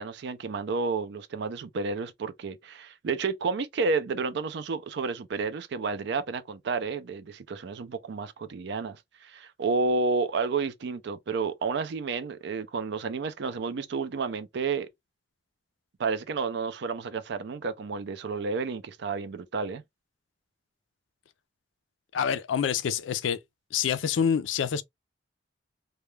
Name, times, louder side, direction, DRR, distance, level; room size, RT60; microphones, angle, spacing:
voice 1, 0.0-14.9 16.0-19.8, right 4 dB, 65° right, 0.4 m, -31 dB
voice 2, 22.1-23.4 23.7-24.8, left 7 dB, 85° left, 0.4 m, -26 dB
2.3 x 2.1 x 3.0 m
head